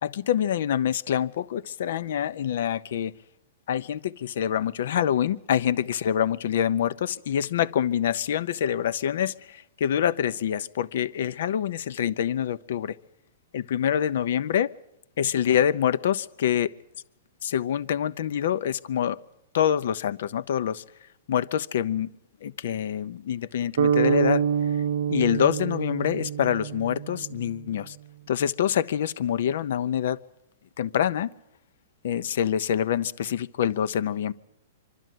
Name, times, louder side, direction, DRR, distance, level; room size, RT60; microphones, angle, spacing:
voice 1, 0.0-3.1 3.7-13.0 13.5-14.7 15.2-16.7 17.4-19.2 19.5-20.8 21.3-22.1 22.4-24.4 25.1-28.0 28.3-30.2 30.8-31.3 32.0-34.3, left 9 dB, 65° left, 0.7 m, -26 dB
sound 1, 23.8-27.7, right 8 dB, 70° right, 0.8 m, -26 dB
24.5 x 12.5 x 9.2 m
hypercardioid pair, 150°, 0 cm